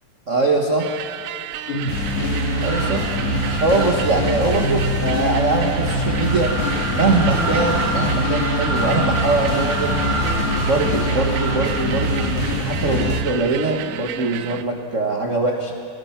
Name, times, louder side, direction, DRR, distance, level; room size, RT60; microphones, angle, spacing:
voice 1, 0.3-0.9 2.6-3.0 3.6-6.5 6.9-9.9 10.6-15.7, right 3 dB, 55° right, 1 dB, 0.8 m, -22 dB
sound 1, 0.8-14.6, right 12 dB, 75° right, 1.8 m, -32 dB
sound 2, 1.7-13.2, left 1 dB, 65° left, 3.2 m, -23 dB
sound 3, 2.6-12.3, right 2 dB, 25° right, 3.3 m, -29 dB
25.0 x 20.0 x 5.9 m, 2.4 s
omnidirectional pair, 3.8 m